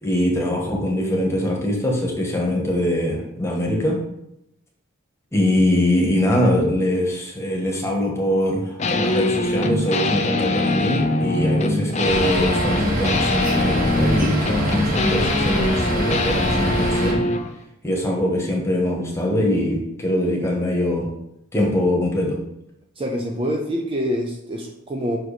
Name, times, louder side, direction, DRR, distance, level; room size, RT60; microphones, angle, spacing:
voice 1, 0.0-4.0 5.3-17.2 17.8-21.1 21.5-22.4, left 1 dB, 15° left, -2 dB, 1.4 m, -22 dB
sound 1, 8.8-17.5, left 2 dB, 35° left, 0.5 m, -23 dB
sound 2, 12.0-17.1, right 1 dB, 45° right, 1.7 m, -25 dB
voice 2, 23.0-25.2, equal, 25° right, 1 dB, 0.6 m, -26 dB
6.1 x 4.7 x 5.0 m, 0.80 s
head